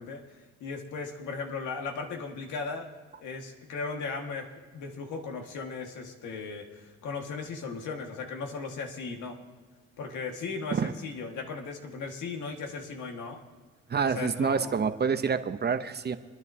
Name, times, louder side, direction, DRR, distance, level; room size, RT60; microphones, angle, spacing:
voice 1, 0.0-2.9 3.2-4.5 4.7-9.4 10.0-13.4 14.0-14.8, left 4 dB, 80° left, 2 dB, 1.8 m, -37 dB
voice 2, 13.9-16.2, right 6 dB, 35° right, 10 dB, 0.7 m, -27 dB
25.5 x 10.5 x 2.8 m, 1.4 s
cardioid pair, 90°, 30 cm